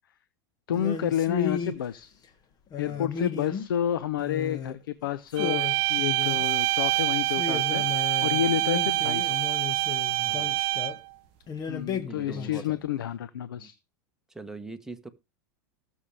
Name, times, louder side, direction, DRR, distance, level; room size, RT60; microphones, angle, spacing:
voice 1, 0.7-2.1 2.8-7.8 8.2-9.4 11.6-13.8, left 10 dB, 85° left, 0.8 m, -30 dB
sound 1, 0.7-1.8 2.7-3.8 4.2-4.8 5.0-5.1 5.3-6.6 7.3-11.0 11.5-12.8, left 6 dB, 35° left, 1.6 m, -34 dB
sound 2, 5.4-11.1, right 21 dB, 50° right, 0.6 m, -26 dB
voice 2, 10.1-10.5 12.0-12.6 13.6-13.7 14.3-15.1, right 3 dB, 5° right, 1.5 m, -43 dB
18.5 x 7.2 x 3.4 m
hypercardioid pair, 110°, 11 cm